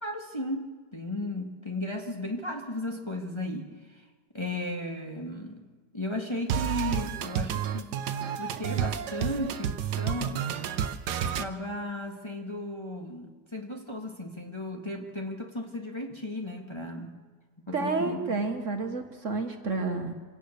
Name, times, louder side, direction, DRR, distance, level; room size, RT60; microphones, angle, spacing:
voice 1, 0.0-4.0 4.3-5.6 5.9-10.5 11.2-17.1 17.7-18.4, left 1 dB, 15° left, 1 dB, 1.7 m, -35 dB
sound 1, 6.5-11.5, right 8 dB, 75° right, 1.4 m, -30 dB
voice 2, 17.7-20.1, right 3 dB, 50° right, 5 dB, 1.8 m, -30 dB
25.5 x 17.0 x 6.6 m, 1.4 s
omnidirectional pair, 1.8 m